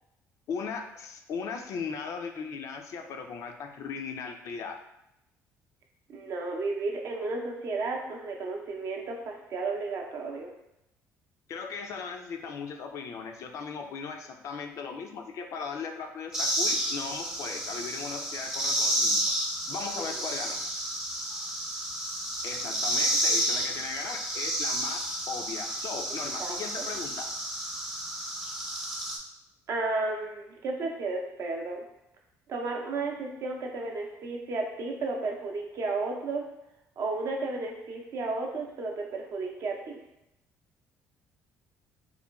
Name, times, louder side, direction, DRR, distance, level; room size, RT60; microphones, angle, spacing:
voice 1, 0.5-4.8 11.5-19.2 19.7-20.6 22.4-27.3, left 5 dB, 60° left, 5 dB, 0.3 m, -38 dB
voice 2, 6.1-10.5 20.0-20.3 26.4-26.9 29.7-31.8 32.5-36.4 37.0-40.0, right 3 dB, 55° right, 1 dB, 0.5 m, -33 dB
sound 1, 16.3-29.2, right 1 dB, 10° right, 0.6 m, -31 dB
3.0 x 2.2 x 2.3 m, 0.86 s
supercardioid pair, 75°, 6 cm